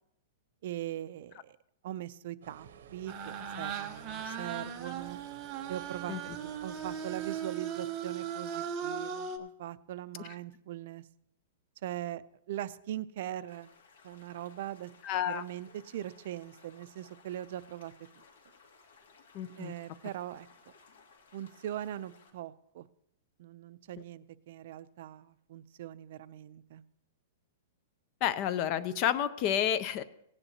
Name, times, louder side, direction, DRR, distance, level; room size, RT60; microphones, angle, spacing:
voice 1, 0.6-1.6 1.8-5.2 5.7-6.2 6.6-11.0 11.8-12.2 12.5-13.7 14.0-14.9 15.3-18.2 19.6-20.5 21.3-22.9 23.4-26.8, right 12 dB, 55° right, 14 dB, 0.4 m, -41 dB
sound 1, 2.4-7.4, right 7 dB, 75° right, 0.8 m, -54 dB
sound 2, 3.1-9.4, right 7 dB, 25° right, 0.9 m, -38 dB
sound 3, 13.5-22.3, left 5 dB, 85° left, 2.1 m, -60 dB
voice 2, 15.0-15.4 19.3-19.7 28.2-30.0, left 10 dB, 35° left, 15 dB, 0.5 m, -30 dB
17.5 x 9.8 x 2.8 m, 0.75 s
hypercardioid pair, 160°, 0 cm